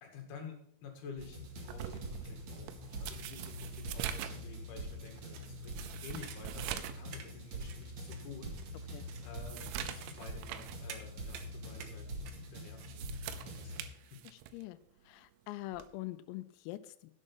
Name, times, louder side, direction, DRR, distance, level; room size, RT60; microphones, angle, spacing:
voice 1, 0.0-8.6 9.2-13.1 13.3-14.2, left 5 dB, 60° left, 3 dB, 3.6 m, -50 dB
sound 1, 1.2-13.9, equal, 50° right, 2.3 m, -45 dB
sound 2, 1.7-7.1 7.4-7.5 8.1-8.2 8.6-10.9 11.2-11.5 12.7-14.6 15.7-16.0, right 11 dB, 90° right, 3.4 m, -44 dB
sound 3, 5.1-12.9, right 8 dB, 70° right, 3.0 m, -52 dB
voice 2, 14.3-14.8 15.1-17.1, left 17 dB, 85° left, 13 dB, 3.3 m, -44 dB
11.0 x 8.3 x 5.5 m, 0.69 s
omnidirectional pair, 6.0 m